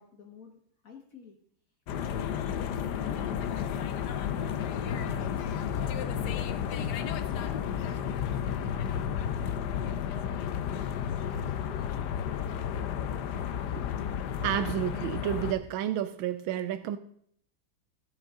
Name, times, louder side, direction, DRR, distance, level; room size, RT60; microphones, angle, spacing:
voice 1, 0.0-1.4 1.9-4.0 4.8-8.7, left 5 dB, 50° left, 3 dB, 1.5 m, -50 dB
sound 1, 1.9-15.5, left 8 dB, 65° left, 1.2 m, -32 dB
voice 2, 14.4-17.0, right 11 dB, 85° right, 10 dB, 1.4 m, -30 dB
15.5 x 8.1 x 3.7 m, 0.65 s
omnidirectional pair, 2.2 m